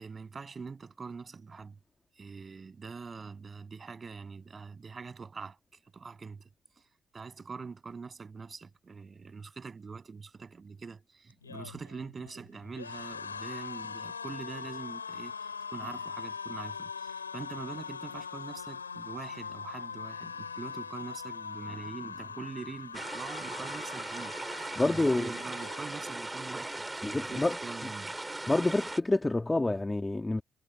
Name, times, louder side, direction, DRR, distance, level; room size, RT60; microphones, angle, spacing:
voice 1, 0.0-1.8 2.1-6.5 6.8-6.9 7.1-28.1, right 5 dB, 30° right, 7.3 m, -44 dB
sound 1, 11.3-26.5 26.8-27.1 27.3-28.1, left 6 dB, 85° left, 7.4 m, -42 dB
sound 2, 22.9-29.0, right 2 dB, 15° right, 5.9 m, -38 dB
voice 2, 24.8-25.3 27.0-27.6 28.5-30.4, left 2 dB, 15° left, 2.5 m, -27 dB
figure-of-eight pair, 50°, 0 cm